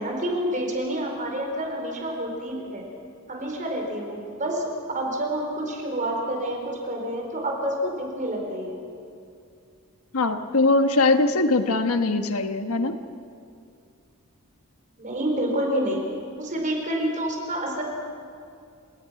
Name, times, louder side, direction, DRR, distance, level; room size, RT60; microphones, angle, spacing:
voice 1, 0.0-2.9 3.3-8.8 15.0-16.0 16.4-17.8, right 1 dB, 35° right, 1 dB, 4.6 m, -28 dB
voice 2, 10.1-12.9, left 3 dB, 75° left, 7 dB, 1.2 m, -21 dB
30.0 x 18.5 x 5.9 m, 2.4 s
head